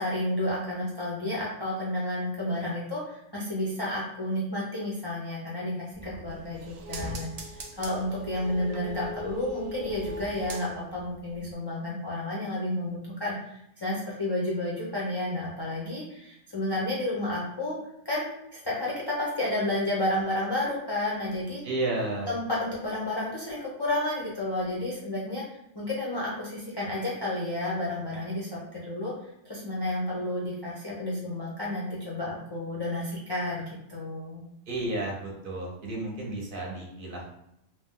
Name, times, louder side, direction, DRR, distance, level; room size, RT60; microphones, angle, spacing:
voice 1, 0.0-17.8 18.0-21.6 22.3-25.4 25.7-29.1 29.4-34.4, left 1 dB, 40° left, -6 dB, 0.3 m, -31 dB
sound 1, 5.9-11.1 11.4-11.5, equal, 85° right, 0.3 m, -39 dB
voice 2, 21.6-22.4 34.7-37.3, right 2 dB, 55° right, -2 dB, 0.7 m, -32 dB
2.6 x 2.0 x 3.5 m, 0.79 s
omnidirectional pair, 1.2 m